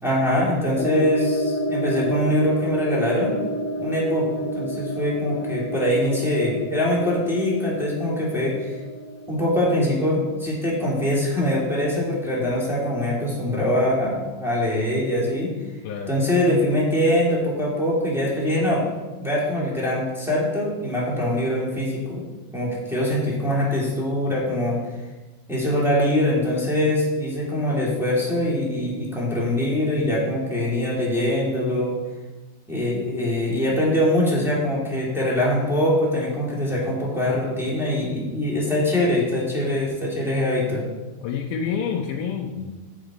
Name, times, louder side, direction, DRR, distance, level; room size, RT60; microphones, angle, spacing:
voice 1, 0.0-3.3 3.8-8.7 9.3-15.5 16.1-18.8 19.2-22.2 22.5-24.8 25.5-31.9 32.7-40.9, left 1 dB, ahead, -6 dB, 2.1 m, -23 dB
sound 1, 0.8-10.3, equal, 65° left, 1.5 m, -29 dB
voice 2, 41.2-42.7, left 6 dB, 85° left, 0 dB, 2.3 m, -28 dB
8.0 x 7.7 x 4.8 m, 1.2 s
omnidirectional pair, 3.6 m